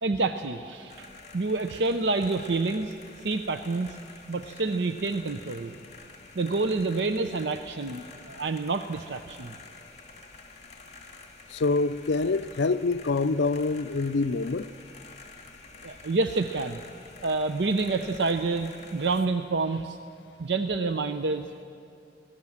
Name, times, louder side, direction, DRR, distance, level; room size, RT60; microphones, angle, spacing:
voice 1, 0.0-1.1 1.3-2.9 3.2-4.0 4.3-5.7 6.4-9.5 15.8-16.8 17.2-20.0 20.4-21.5, right 3 dB, 70° right, 0.7 m, -28 dB
sound 1, 0.9-19.3, left 3 dB, 40° left, 2.5 m, -49 dB
voice 2, 11.5-14.7, left 3 dB, 70° left, 0.5 m, -26 dB
24.5 x 18.5 x 7.3 m
head